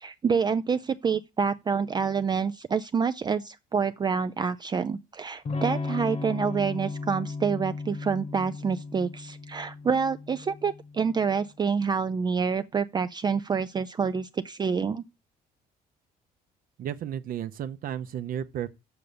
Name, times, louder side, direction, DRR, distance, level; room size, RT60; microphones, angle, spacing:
voice 1, 0.0-15.0, right 6 dB, 25° right, 0.4 m, -27 dB
Electric guitar / Strum, 5.4-11.2, left 3 dB, 40° left, 1.3 m, -35 dB
voice 2, 16.8-18.7, right 10 dB, 55° right, 0.8 m, -33 dB
6.9 x 6.5 x 6.9 m
cardioid pair, 110°, 17 cm